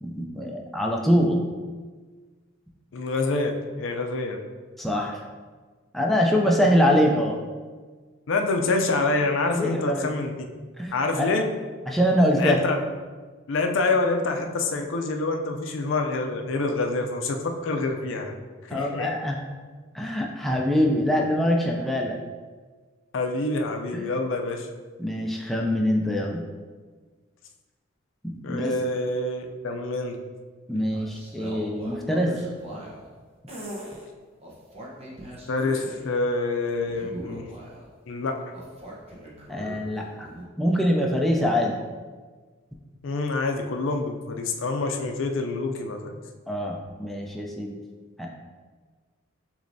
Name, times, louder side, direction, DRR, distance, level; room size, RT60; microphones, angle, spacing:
voice 1, 0.0-1.4 4.8-5.2 5.9-7.4 9.6-10.1 10.8-11.3 11.9-12.6 18.7-19.4 19.9-22.2 23.9-24.1 25.0-26.4 28.2-28.8 30.7-32.4 39.5-40.3 40.6-41.8 46.5-46.7 47.0-47.7 48.2-48.3, equal, ahead, -1 dB, 0.4 m, -24 dB
voice 2, 2.9-3.5 3.8-4.4 8.3-10.4 10.9-11.5 12.4-12.8 13.5-18.3 18.7-19.1 23.1-24.7 28.4-30.2 35.5-37.5 38.1-38.4 43.0-46.2, left 3 dB, 65° left, 4 dB, 0.4 m, -26 dB
sound 1, 30.7-33.1 33.5-34.0 34.4-36.1 36.7-37.9 38.5-40.4, right 1 dB, 30° right, 0.9 m, -41 dB
6.4 x 3.1 x 2.7 m, 1.4 s
head